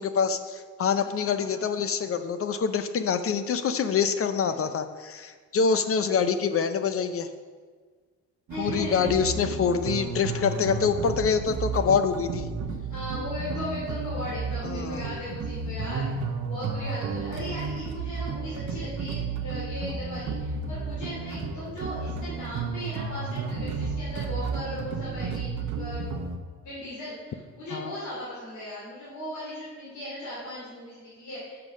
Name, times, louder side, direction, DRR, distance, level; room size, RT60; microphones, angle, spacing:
voice 1, 0.0-7.3 8.6-12.5 14.6-15.1 27.7-27.9, left 6 dB, 50° left, 10 dB, 0.6 m, -26 dB
voice 2, 0.8-1.7 4.4-4.7 5.7-5.8 8.5-9.1 10.2-10.8 12.9-16.1 16.5-26.1 26.6-31.6, equal, 70° left, -8 dB, 2.8 m, -38 dB
sound 1, 8.5-26.4, right 4 dB, 70° right, 1.0 m, -32 dB
6.7 x 5.7 x 6.2 m, 1.5 s
cardioid pair, 90°, 30 cm